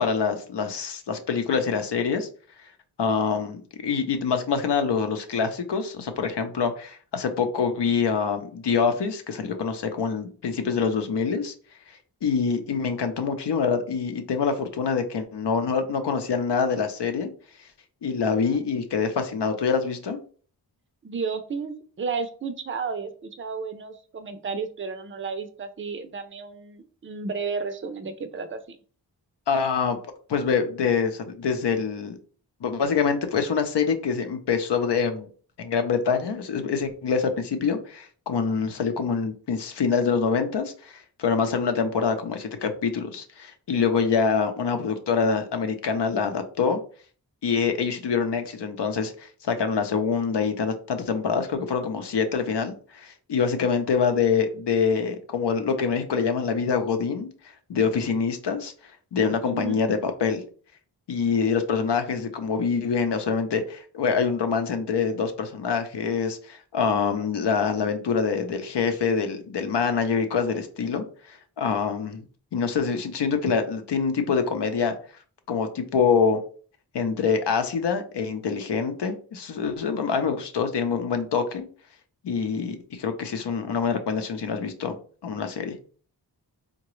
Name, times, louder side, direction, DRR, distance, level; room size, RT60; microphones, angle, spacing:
voice 1, 0.0-2.3 3.0-11.5 12.2-17.3 18.0-20.2 29.5-30.0 30.3-32.2 32.6-35.3 35.6-46.8 47.4-57.3 57.7-58.7 59.1-60.4 61.1-72.2 72.5-74.9 75.5-76.4 76.9-81.7 82.2-84.9 85.2-85.8, left 5 dB, 70° left, 7 dB, 0.6 m, -25 dB
voice 2, 21.0-28.8 59.5-59.8, right 5 dB, 30° right, 8 dB, 0.5 m, -33 dB
3.8 x 2.2 x 3.0 m, 0.42 s
cardioid pair, 60°, 43 cm